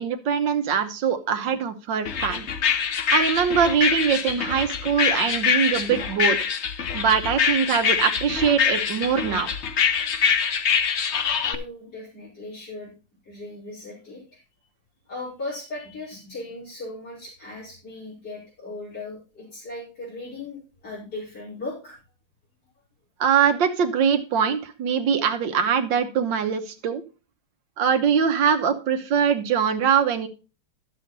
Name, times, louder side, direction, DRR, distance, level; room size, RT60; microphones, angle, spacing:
voice 1, 0.0-2.5 3.1-6.4 6.9-9.5 23.2-27.0 27.8-30.3, right 7 dB, 65° right, 8 dB, 1.6 m, -22 dB
sound 1, 2.0-11.5, left 7 dB, 75° left, 0.6 m, -24 dB
voice 2, 11.4-12.9 13.2-14.4 15.1-22.0, left 2 dB, 50° left, -9 dB, 5.3 m, -37 dB
11.5 x 7.5 x 4.0 m, 0.33 s
omnidirectional pair, 2.3 m